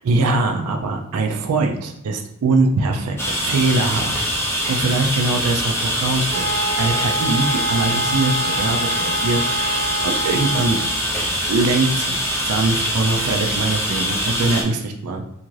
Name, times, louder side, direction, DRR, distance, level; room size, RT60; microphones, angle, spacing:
voice 1, 0.0-4.2 4.7-10.8 11.4-15.2, right 3 dB, 80° right, 3 dB, 0.4 m, -22 dB
sound 1, 3.2-14.6, equal, 10° left, 0.4 m, -23 dB
sound 2, 6.3-11.0, right 1 dB, 40° right, 0.8 m, -26 dB
2.7 x 2.4 x 3.1 m, 0.82 s
head